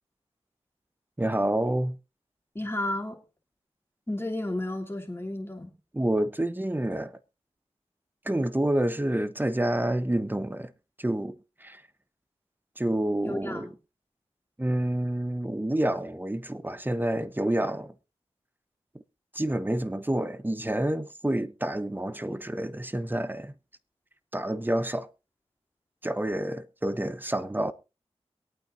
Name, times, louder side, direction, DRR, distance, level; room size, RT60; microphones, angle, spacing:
voice 1, 1.2-2.0 5.9-7.1 8.2-10.7 11.0-11.4 11.6-11.8 12.8-13.7 14.6-17.9 19.3-23.5 24.3-25.1 26.0-27.7, right 1 dB, 15° right, 1.0 m, -28 dB
voice 2, 2.5-3.2 4.1-5.7 13.2-13.7, left 1 dB, 20° left, 3.1 m, -32 dB
23.0 x 8.9 x 2.7 m
cardioid pair, 45°, 11 cm